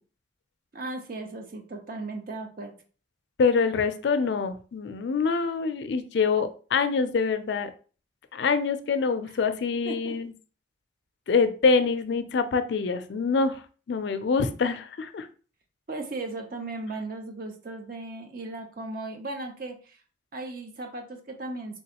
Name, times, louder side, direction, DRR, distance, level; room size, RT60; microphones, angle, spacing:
voice 1, 0.7-2.7 9.3-9.4 9.8-10.2 15.9-20.0 20.3-21.8, right 2 dB, 50° right, 4 dB, 0.6 m, -36 dB
voice 2, 3.4-7.7 8.3-10.3 11.3-13.6 13.9-15.3, left 5 dB, 65° left, 10 dB, 0.4 m, -25 dB
3.4 x 3.0 x 2.8 m, 0.39 s
head